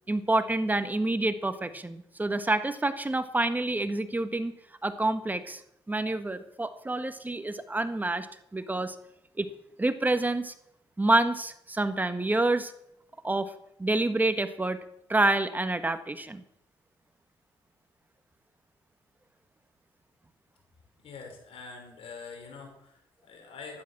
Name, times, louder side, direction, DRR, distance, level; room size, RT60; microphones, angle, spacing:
voice 1, 0.1-4.5 4.8-5.6 5.9-8.3 8.5-8.9 9.4-9.5 9.8-10.5 11.0-12.7 13.2-13.5 13.8-14.8 15.1-16.4, right 2 dB, 15° right, 10 dB, 1.5 m, -27 dB
voice 2, 21.0-23.8, left 4 dB, 75° left, 2 dB, 5.4 m, -45 dB
12.5 x 11.5 x 7.3 m, 0.75 s
cardioid pair, 80°, 10 cm